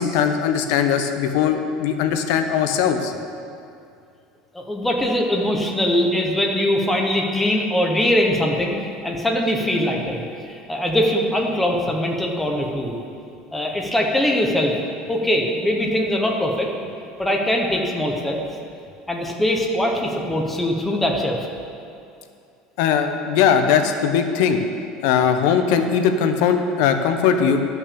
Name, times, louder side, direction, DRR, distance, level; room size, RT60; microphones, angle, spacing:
voice 1, 0.0-3.1 22.8-24.6 25.0-27.6, left 7 dB, 70° left, 7 dB, 0.9 m, -19 dB
voice 2, 4.5-8.8 9.0-13.0 13.5-14.7 15.1-16.7 17.2-18.4 19.1-21.4, left 1 dB, 5° left, 0 dB, 1.1 m, -22 dB
12.0 x 6.0 x 6.9 m, 2.5 s
cardioid pair, 165°, 2 cm